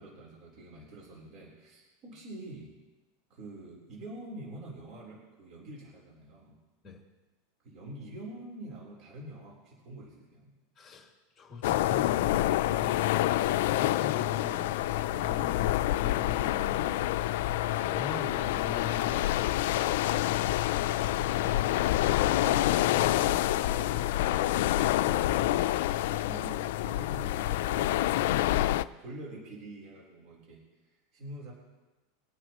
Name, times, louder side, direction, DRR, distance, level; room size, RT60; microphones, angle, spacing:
voice 1, 0.0-2.7 3.3-6.6 7.6-10.5 19.3-19.6 22.4-24.7 25.2-28.0 28.2-31.5, right 1 dB, 35° right, -3 dB, 3.8 m, -46 dB
voice 2, 10.8-14.7 15.1-17.4 17.7-19.2, left 4 dB, 15° left, -2 dB, 2.3 m, -43 dB
sound 1, 11.6-28.8, left 14 dB, 65° left, 0.4 m, -27 dB
21.5 x 9.6 x 3.0 m, 1.1 s
supercardioid pair, 155°, 0 cm